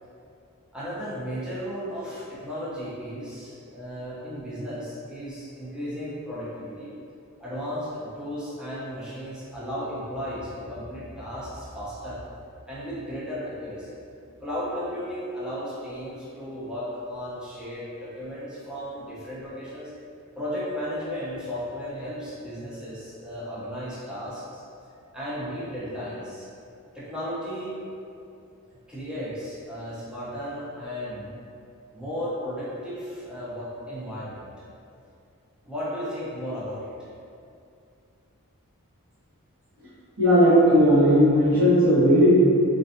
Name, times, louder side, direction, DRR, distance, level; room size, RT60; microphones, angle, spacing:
voice 1, 0.7-6.9 7.4-12.2 12.7-13.9 14.4-19.9 20.4-24.6 25.1-26.5 26.9-27.8 28.7-31.4 31.9-34.5 35.6-37.1, equal, 5° right, -10 dB, 0.5 m, -34 dB
voice 2, 40.2-42.3, equal, 75° right, -18 dB, 1.1 m, -17 dB
2.5 x 2.2 x 2.6 m, 2.5 s
head